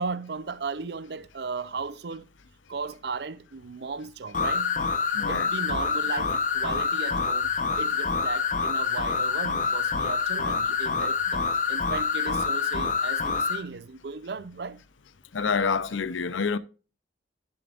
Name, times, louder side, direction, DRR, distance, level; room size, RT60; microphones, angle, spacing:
voice 1, 0.0-2.2 2.7-4.8 5.3-7.5 7.8-11.4 11.7-14.8, right 4 dB, 60° right, 0.5 m, -36 dB
sound 1, 4.3-13.6, left 5 dB, 40° left, 0.9 m, -26 dB
voice 2, 5.1-5.5 15.3-16.6, left 5 dB, 90° left, 0.6 m, -27 dB
10.5 x 6.9 x 2.4 m
head